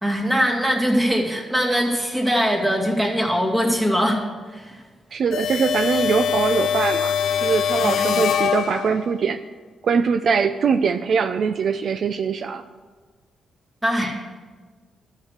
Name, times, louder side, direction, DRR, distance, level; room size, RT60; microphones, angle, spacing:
voice 1, 0.0-4.2 4.5-4.8 7.8-8.2 13.8-14.2, equal, 15° right, 0 dB, 2.5 m, -22 dB
voice 2, 5.1-9.4 9.8-12.6, right 6 dB, 60° right, 9 dB, 0.5 m, -22 dB
sound 1, 5.3-9.2, left 8 dB, 80° left, 0.5 m, -23 dB
13.0 x 6.7 x 6.5 m, 1.4 s
cardioid pair, 80°, 0 cm